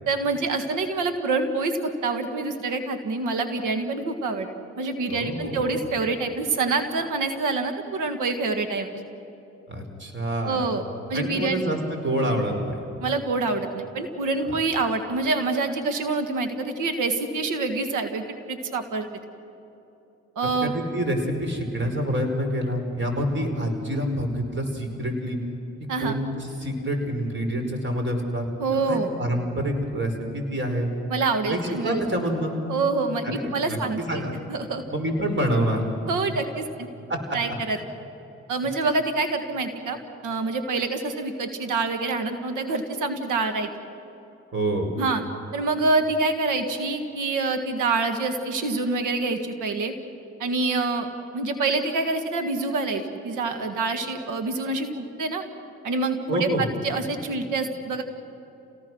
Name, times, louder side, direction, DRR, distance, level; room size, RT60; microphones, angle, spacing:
voice 1, 0.1-4.5 4.8-9.0 10.4-10.8 11.1-11.6 13.0-19.1 20.4-20.7 25.9-26.2 28.6-29.1 31.1-32.0 32.7-34.2 34.5-34.8 36.1-36.9 37.3-37.8 38.5-43.7 45.0-45.2 45.5-49.9 50.4-51.1 51.3-55.4 55.8-58.0, right 3 dB, 75° right, 7 dB, 1.9 m, -26 dB
voice 2, 5.1-5.8 9.7-10.6 11.1-12.8 14.5-14.6 20.4-25.4 26.0-28.4 28.7-30.9 31.5-32.5 33.2-34.3 34.9-35.8 37.1-37.2 44.5-44.9 56.3-56.6, equal, 40° right, 4 dB, 5.0 m, -27 dB
28.0 x 18.5 x 6.3 m, 2.8 s
supercardioid pair, 55°, 31 cm